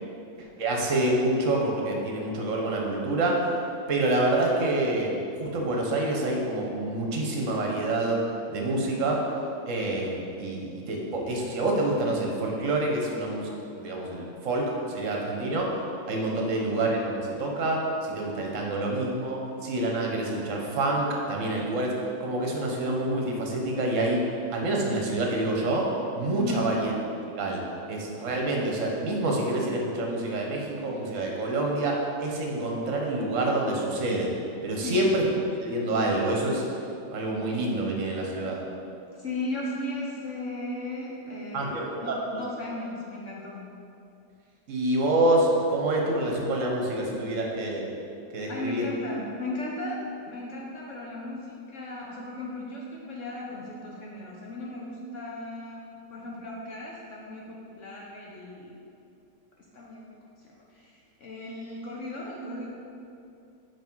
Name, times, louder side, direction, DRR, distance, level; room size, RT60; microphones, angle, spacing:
voice 1, 0.6-3.4 3.9-5.1 5.4-8.2 8.5-9.2 9.7-14.6 14.9-15.7 16.1-21.9 22.2-24.2 24.5-25.9 26.2-26.9 27.4-27.6 27.9-34.3 34.6-35.2 35.6-36.6 37.1-38.6 41.5-42.1 44.7-47.9 48.3-48.9, right 2 dB, 55° right, -1 dB, 1.2 m, -27 dB
voice 2, 26.4-26.7 34.8-35.1 39.1-43.7 48.5-50.0 50.3-55.8 56.1-58.8 59.7-62.7, left 1 dB, 55° left, -3 dB, 0.9 m, -36 dB
5.9 x 5.1 x 4.5 m, 2.6 s
omnidirectional pair, 1.8 m